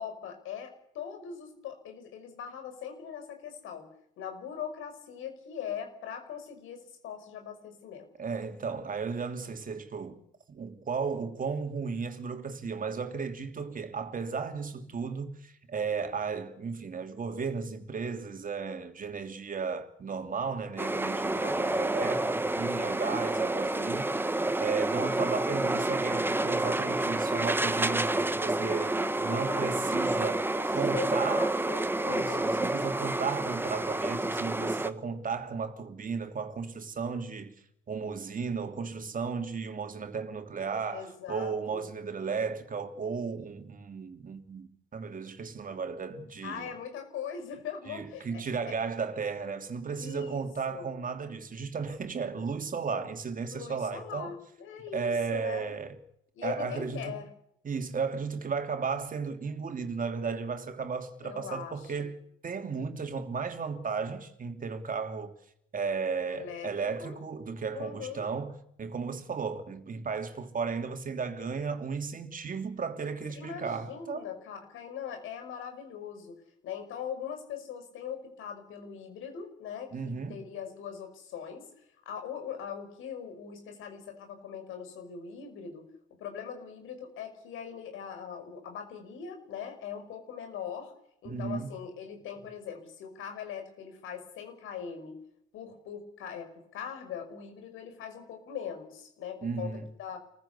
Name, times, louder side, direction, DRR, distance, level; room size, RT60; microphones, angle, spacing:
voice 1, 0.0-3.9 4.2-8.1 21.5-22.0 29.0-30.1 30.6-32.6 40.9-41.9 46.4-48.4 50.0-50.9 53.5-55.7 56.3-57.3 61.2-62.1 66.3-67.2 67.7-68.3 73.3-81.7 82.1-85.9 86.2-90.9 91.2-95.2 95.5-100.2, left 7 dB, 90° left, 5.7 m, -41 dB
voice 2, 8.2-10.2 10.5-24.3 24.6-31.5 32.1-37.5 37.9-46.7 47.9-54.3 54.9-56.0 56.4-57.2 57.6-65.3 65.7-74.3 79.9-80.4 91.2-91.7 99.4-99.9, right 5 dB, 45° right, 3.1 m, -34 dB
sound 1, 20.8-34.9, right 2 dB, 10° right, 1.3 m, -29 dB
27.0 x 15.5 x 8.4 m
cardioid pair, 90°, 20 cm